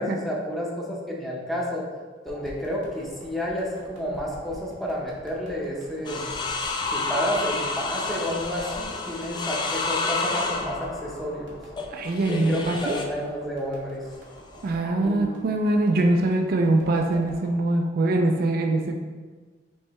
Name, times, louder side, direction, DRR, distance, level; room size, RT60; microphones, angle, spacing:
voice 1, 0.0-1.8 2.2-6.4 6.9-11.6 12.3-14.1 15.0-15.4, equal, ahead, -4 dB, 0.7 m, -30 dB
sound 1, 2.3-17.6, equal, 75° right, 1.2 m, -45 dB
sound 2, 6.0-13.2 14.1-14.7, left 3 dB, 25° left, 0.3 m, -30 dB
voice 2, 11.9-13.0 14.6-18.9, right 2 dB, 55° right, 3 dB, 0.4 m, -23 dB
4.5 x 3.2 x 3.1 m, 1.4 s
head